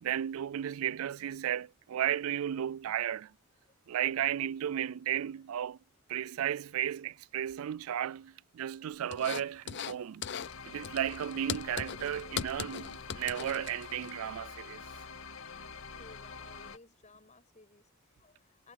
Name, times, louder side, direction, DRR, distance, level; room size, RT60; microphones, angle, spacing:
voice 1, 0.0-3.3 3.9-5.8 6.1-10.2 10.7-14.9, right 10 dB, 85° right, 0.4 m, -34 dB
sound 1, 9.1-10.0 10.2-10.5 10.8-14.1, left 8 dB, 55° left, 0.6 m, -39 dB
sound 2, 10.4-16.8, left 4 dB, 75° left, 2.0 m, -46 dB
voice 2, 15.9-18.7, left 3 dB, 35° left, 6.1 m, -58 dB
head